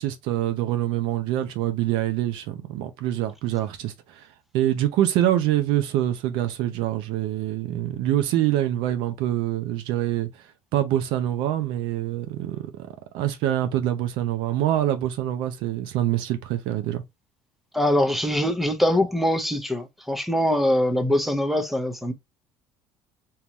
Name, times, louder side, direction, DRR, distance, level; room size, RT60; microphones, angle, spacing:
voice 1, 0.0-4.3 4.5-10.3 10.7-12.7 13.1-17.0, right 12 dB, 75° right, 0.6 m, -25 dB
voice 2, 17.7-22.1, left 1 dB, ahead, 0.7 m, -23 dB
3.7 x 2.9 x 2.9 m
cardioid pair, 120°, 8 cm